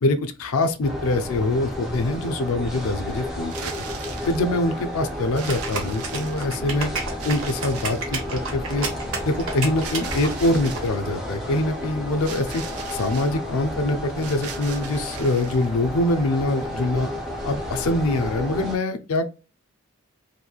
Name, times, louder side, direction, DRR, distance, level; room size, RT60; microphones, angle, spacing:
voice 1, 0.0-3.7 4.3-6.9 7.2-8.9 9.2-12.6 12.9-17.1 17.4-19.3, left 2 dB, 75° left, 0.5 m, -24 dB
sound 1, 0.8-18.8, left 1 dB, ahead, 0.6 m, -32 dB
sound 2, 3.4-4.4 5.3-6.6 7.2-8.1 9.8-10.9 12.2-13.3 14.2-15.7, right 6 dB, 90° right, 0.6 m, -39 dB
sound 3, 5.5-10.8, right 4 dB, 65° right, 0.9 m, -31 dB
3.0 x 2.7 x 2.3 m
head